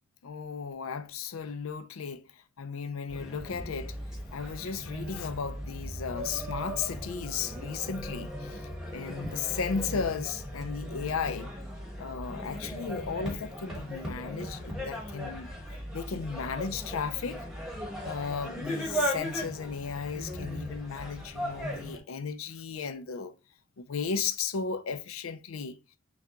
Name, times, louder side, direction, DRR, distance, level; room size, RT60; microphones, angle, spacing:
voice 1, 0.2-4.0 4.3-11.5 12.0-15.5 15.9-17.4 18.0-23.3 23.8-25.8, left 6 dB, 75° left, 0.5 m, -35 dB
sound 1, 3.1-22.0, equal, 5° right, 1.0 m, -37 dB
6.1 x 2.3 x 2.8 m
head